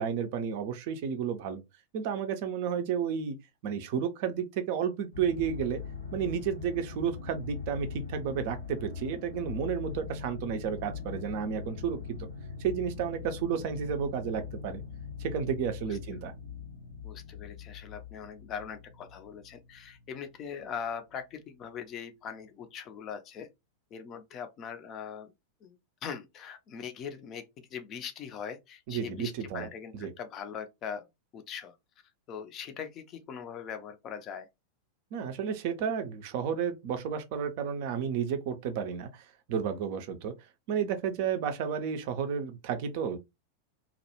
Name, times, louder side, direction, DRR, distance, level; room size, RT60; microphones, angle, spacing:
voice 1, 0.0-1.6 1.9-3.4 3.6-5.8 6.1-12.3 12.6-14.8 15.2-16.3 28.9-29.7 29.9-30.1 35.1-40.3 40.7-43.2, right 7 dB, 50° right, 0.4 m, -32 dB
sound 1, 5.1-20.8 21.3-21.4, left 6 dB, 75° left, 0.6 m, -42 dB
voice 2, 15.9-16.2 17.0-23.5 23.9-25.3 25.6-31.1 31.3-31.7 32.3-34.5, left 7 dB, 30° left, 0.4 m, -41 dB
2.2 x 2.0 x 2.8 m
figure-of-eight pair, 90°, 0 cm